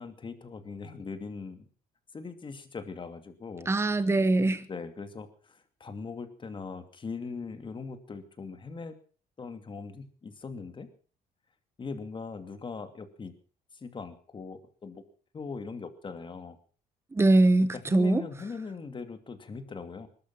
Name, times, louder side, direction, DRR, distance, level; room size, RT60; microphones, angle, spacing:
voice 1, 0.0-1.7 2.1-3.7 4.7-9.0 9.4-10.9 11.8-13.3 13.7-15.0 15.3-16.6 17.9-20.1, left 4 dB, 30° left, 2.6 m, -40 dB
voice 2, 3.7-4.7 17.1-18.2, right 2 dB, 15° right, 1.1 m, -22 dB
21.0 x 12.5 x 5.6 m
cardioid pair, 110°, 17 cm